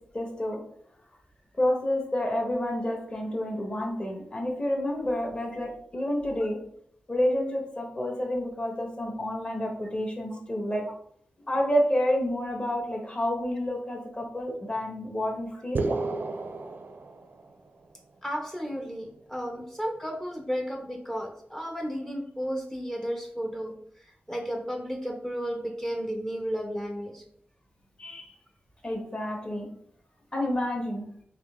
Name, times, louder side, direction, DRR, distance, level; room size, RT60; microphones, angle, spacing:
voice 1, 0.1-0.6 1.6-6.6 7.1-10.8 11.5-15.8 28.0-28.3 28.8-29.7 30.3-31.0, left 1 dB, 30° left, 0 dB, 1.0 m, -29 dB
sound 1, 15.7-17.7, right 3 dB, 60° right, 0.4 m, -31 dB
voice 2, 18.2-23.7 24.0-27.2, equal, 10° left, 2 dB, 0.5 m, -33 dB
3.7 x 2.8 x 3.5 m, 0.67 s
wide cardioid pair, 110°, 4 cm